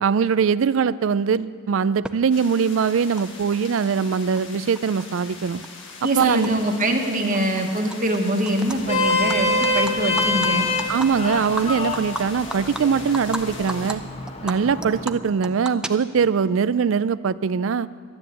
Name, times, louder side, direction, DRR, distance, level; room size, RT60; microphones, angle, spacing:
voice 1, 0.0-5.6 6.0-6.5 10.9-14.0 14.4-17.9, right 6 dB, 70° right, 17 dB, 0.4 m, -22 dB
Animal, 2.0-2.1 3.2-3.3 3.5-4.4 4.8-6.5 6.8-7.1 7.3-8.2 8.5-8.8 9.1-13.4 13.7-13.9 14.3-16.4, right 1 dB, 5° right, 0.4 m, -34 dB
sound 1, 2.3-14.0, left 4 dB, 65° left, 1.4 m, -41 dB
voice 2, 6.0-10.7, right 1 dB, 40° right, 3 dB, 1.3 m, -23 dB
Vehicle horn car horn honking, 8.6-15.0, left 2 dB, 30° left, 1.0 m, -26 dB
11.5 x 9.8 x 8.0 m, 2.1 s
head